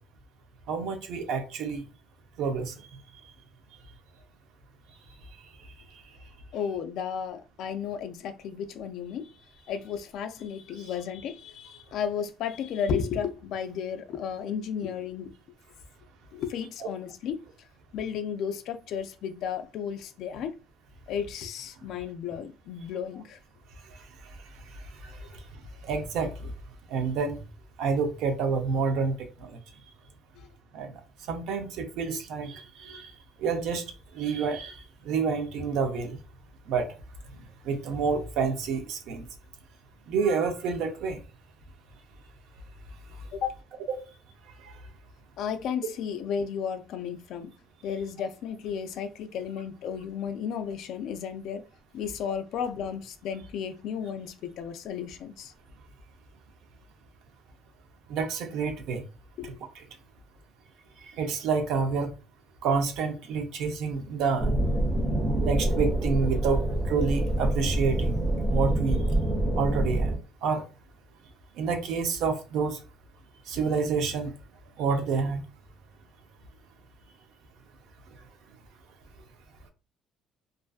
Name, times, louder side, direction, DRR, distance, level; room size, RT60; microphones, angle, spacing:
voice 1, 0.7-1.8 2.4-2.7 16.8-16.9 25.8-26.5 26.9-27.4 27.8-29.6 30.7-30.9 31.3-33.1 33.4-33.8 34.1-34.8 35.0-36.2 36.7-36.9 37.6-39.2 40.1-41.2 43.9-44.0 58.1-59.0 61.2-62.1 62.6-64.5 65.4-66.6 66.9-68.2 68.5-69.0 69.6-70.1 70.4-70.6 71.6-72.8 73.5-74.3 74.8-75.4, right 5 dB, 65° right, 0.6 m, -28 dB
voice 2, 6.5-9.3 9.6-15.3 16.3-17.4 17.9-20.5 21.1-23.4 43.3-43.5 45.4-47.5 47.8-51.6 51.9-55.5 59.4-59.5, left 7 dB, 60° left, 0.3 m, -33 dB
sound 1, 64.4-70.2, right 1 dB, 25° right, 0.5 m, -26 dB
2.5 x 2.4 x 2.3 m
cardioid pair, 165°, 0 cm